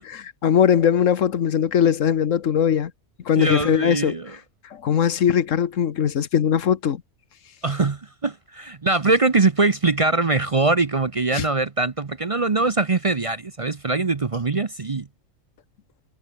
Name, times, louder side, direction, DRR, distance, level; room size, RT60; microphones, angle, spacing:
voice 1, 0.4-2.9 3.3-4.2 4.8-7.0 11.3-11.4, left 8 dB, 80° left, 1.4 m, -20 dB
voice 2, 3.4-4.4 7.6-15.1, right 3 dB, 30° right, 0.7 m, -22 dB
omnidirectional pair, 1.3 m